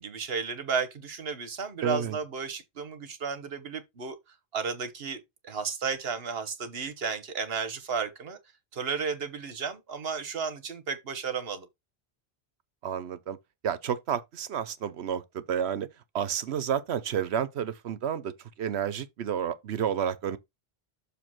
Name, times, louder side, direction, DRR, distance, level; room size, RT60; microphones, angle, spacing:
voice 1, 0.0-4.2 4.5-8.4 8.7-11.7, right 5 dB, 65° right, 1.4 m, -33 dB
voice 2, 1.8-2.2 12.8-13.4 13.6-15.9 16.1-18.3 18.6-20.4, right 8 dB, 80° right, 1.1 m, -30 dB
6.9 x 3.3 x 6.1 m
omnidirectional pair, 1.1 m